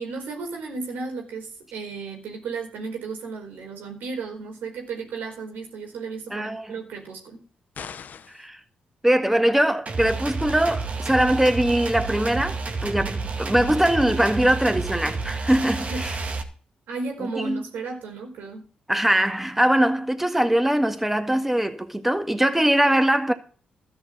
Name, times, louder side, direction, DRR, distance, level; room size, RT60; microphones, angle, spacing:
voice 1, 0.0-7.4 15.9-16.1 16.9-18.7, right 4 dB, 85° right, 4.5 m, -34 dB
voice 2, 6.3-6.7 8.3-8.6 9.0-16.1 17.2-17.6 18.9-23.3, right 1 dB, 10° right, 1.9 m, -22 dB
sound 1, 7.7-8.5, left 7 dB, 60° left, 0.8 m, -39 dB
sound 2, 9.9-16.4, right 4 dB, 45° right, 2.2 m, -30 dB
13.5 x 6.3 x 7.4 m
cardioid pair, 65°, 3 cm